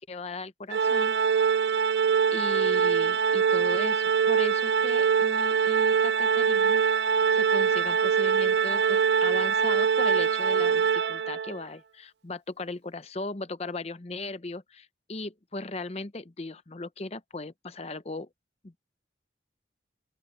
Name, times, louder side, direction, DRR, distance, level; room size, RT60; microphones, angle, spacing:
voice 1, 0.1-1.2 2.3-18.3 18.6-18.8, left 2 dB, 35° left, 0.7 m, -38 dB
Organ, 0.7-11.6, right 6 dB, 65° right, 0.4 m, -23 dB
open air
head